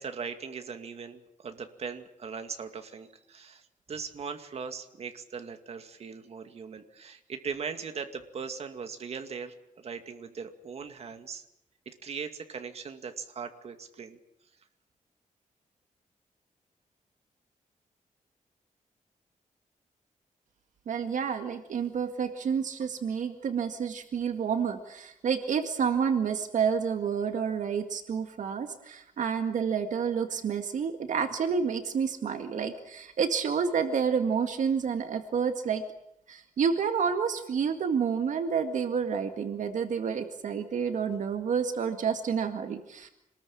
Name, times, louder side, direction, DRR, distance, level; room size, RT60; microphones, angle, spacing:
voice 1, 0.0-11.4 11.9-14.2, right 5 dB, 50° right, 7 dB, 2.3 m, -39 dB
voice 2, 20.9-35.8 36.3-43.1, right 6 dB, 65° right, 7 dB, 2.0 m, -29 dB
27.0 x 20.5 x 8.7 m, 0.78 s
wide cardioid pair, 165°, 14 cm